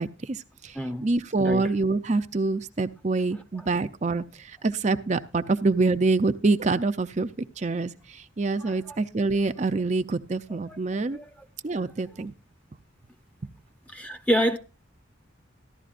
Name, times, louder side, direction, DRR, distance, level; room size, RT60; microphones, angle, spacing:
voice 1, 0.0-7.3 7.6-11.2 11.6-12.3, right 3 dB, 35° right, 0.5 m, -26 dB
voice 2, 1.4-1.7 8.6-9.0 10.7-10.8 11.1-11.3 13.9-14.6, equal, 5° left, 0.7 m, -27 dB
14.5 x 12.0 x 2.5 m
head